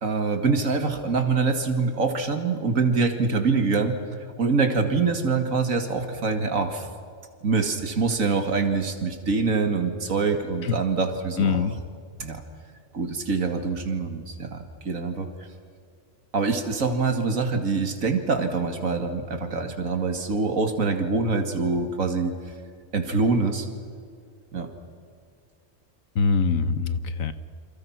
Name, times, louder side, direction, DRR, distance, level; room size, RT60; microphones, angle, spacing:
voice 1, 0.0-4.0 4.4-6.9 7.4-11.7 12.2-12.4 12.9-15.3 16.3-22.3 22.9-23.7 24.5-24.7, right 4 dB, 80° right, 6 dB, 2.5 m, -25 dB
voice 2, 11.4-11.7 26.1-27.3, left 5 dB, 80° left, 11 dB, 1.6 m, -23 dB
28.5 x 27.0 x 6.0 m, 2.2 s
omnidirectional pair, 1.4 m